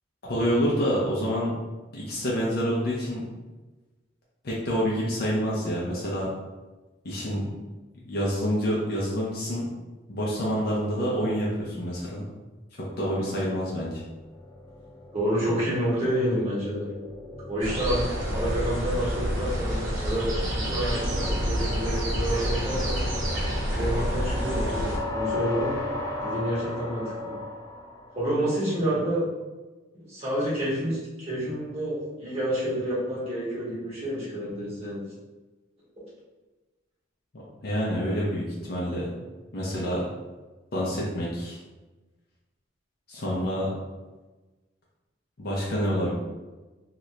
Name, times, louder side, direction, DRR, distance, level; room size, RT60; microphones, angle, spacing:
voice 1, 0.2-1.5 1.9-3.3 4.4-6.3 7.0-7.5 8.0-9.7 10.1-12.3 12.8-14.0 37.6-39.1 39.5-40.0 40.7-41.6 43.1-43.7 45.4-46.1, equal, 55° left, -5 dB, 0.6 m, -27 dB
sound 1, 13.8-28.6, left 2 dB, 20° left, 0.5 m, -37 dB
voice 2, 15.1-16.8 17.5-18.0 18.3-23.0 23.7-25.8 26.2-27.3 28.1-29.2 29.9-35.0, equal, 35° right, -8 dB, 1.5 m, -29 dB
sound 2, 17.6-25.0, equal, 90° right, 1.0 m, -28 dB
2.8 x 2.6 x 3.2 m, 1.2 s
head